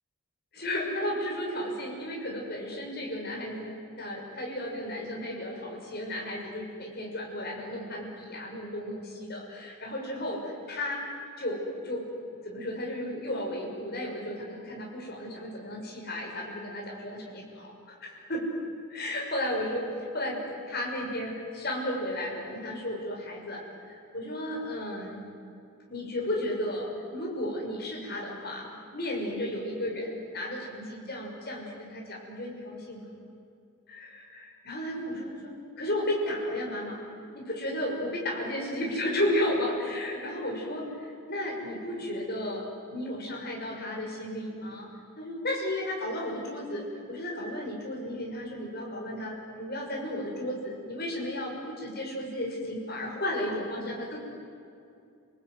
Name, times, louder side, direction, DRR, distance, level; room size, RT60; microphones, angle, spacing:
voice 1, 0.5-11.1 11.4-12.0 12.4-18.5 18.9-19.8 20.1-20.4 20.7-25.2 25.9-28.7 28.9-33.1 33.9-35.5 35.8-37.0 37.3-40.9 41.3-42.6 42.9-44.9 45.2-54.2, left 1 dB, 45° left, -1 dB, 6.4 m, -33 dB
29.5 x 19.0 x 9.5 m, 2.5 s
head